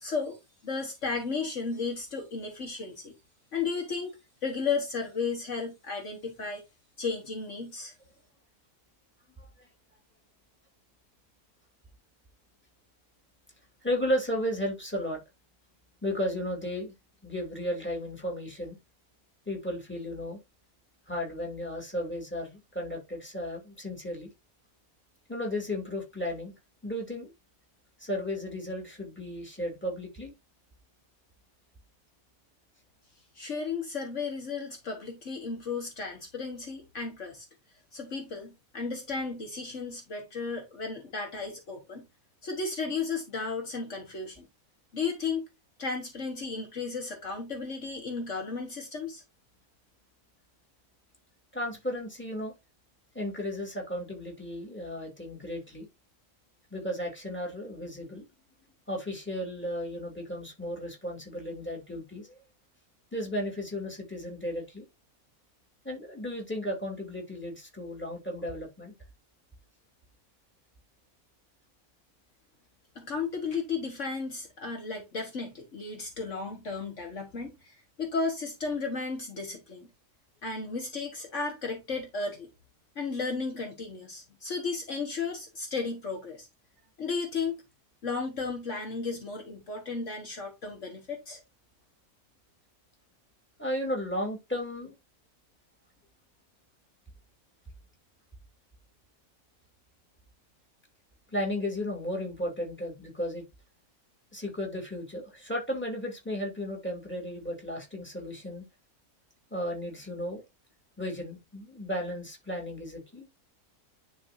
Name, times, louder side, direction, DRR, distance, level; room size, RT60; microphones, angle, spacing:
voice 1, 0.0-3.1 3.5-6.6 7.0-7.9 33.3-37.5 37.9-42.0 42.4-44.5 44.9-45.5 45.8-49.2 72.9-79.9 80.4-82.5 82.9-86.5 87.0-87.6 88.0-91.4, left 4 dB, 55° left, 1.7 m, -34 dB
voice 2, 9.4-9.7 13.8-15.2 16.0-16.9 17.2-18.8 19.5-20.4 21.1-24.3 25.3-26.5 26.8-27.3 28.0-30.3 51.5-52.5 53.1-55.9 56.7-58.2 58.9-62.4 63.1-64.9 65.8-68.9 93.6-94.9 101.3-103.4 104.3-108.6 109.5-110.4 111.0-113.3, equal, 5° left, 2.5 m, -34 dB
10.5 x 4.0 x 2.6 m
omnidirectional pair, 1.6 m